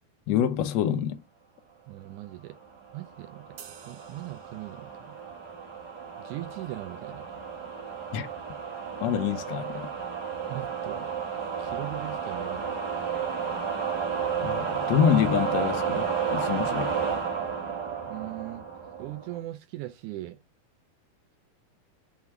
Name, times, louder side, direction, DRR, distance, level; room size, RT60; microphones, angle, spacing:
voice 1, 0.3-1.2 8.1-8.3 9.0-9.9 14.4-16.9, left 9 dB, 80° left, 1.5 m, -26 dB
voice 2, 1.9-2.6 2.9-3.4 3.8-5.1 6.2-7.3 10.4-11.1 11.4-12.8 18.1-18.7 19.0-20.4, right 16 dB, 90° right, 1.7 m, -39 dB
sound 1, 2.9-19.4, right 6 dB, 45° right, 1.4 m, -32 dB
sound 2, 3.6-5.2, right 8 dB, 65° right, 1.8 m, -51 dB
6.2 x 3.6 x 4.5 m
omnidirectional pair, 4.2 m